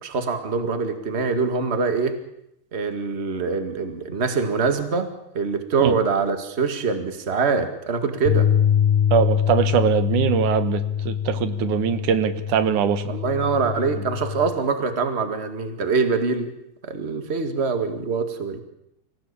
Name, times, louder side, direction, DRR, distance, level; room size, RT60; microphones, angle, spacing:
voice 1, 0.0-2.2 2.7-8.5 13.1-16.5 16.9-18.6, right 4 dB, 25° right, 8 dB, 1.9 m, -24 dB
sound 1, 8.3-14.5, left 9 dB, 90° left, 2.9 m, -24 dB
voice 2, 9.1-13.1, right 9 dB, 85° right, 12 dB, 2.7 m, -22 dB
25.0 x 16.0 x 8.7 m, 0.83 s
omnidirectional pair, 3.5 m